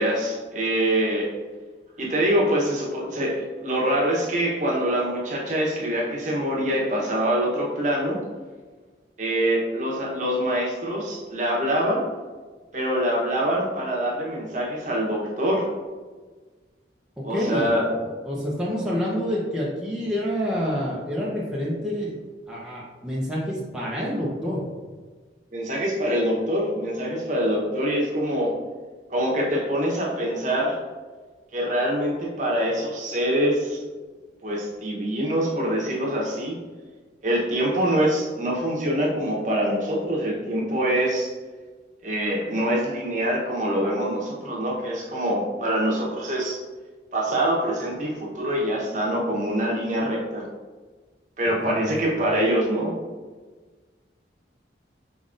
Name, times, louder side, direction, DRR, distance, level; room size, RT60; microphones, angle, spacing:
voice 1, 0.0-1.3 2.0-8.2 9.2-12.1 12.7-15.7 17.2-17.9 25.5-28.5 29.1-30.8 31.5-33.8 34.4-36.6 37.2-41.3 42.0-46.6 47.1-50.5 51.4-52.9, equal, 40° right, -3 dB, 0.9 m, -24 dB
voice 2, 17.3-17.7 18.2-22.1 22.5-24.6 51.6-51.9, equal, 5° right, -7 dB, 0.6 m, -27 dB
5.1 x 3.6 x 2.5 m, 1.4 s
head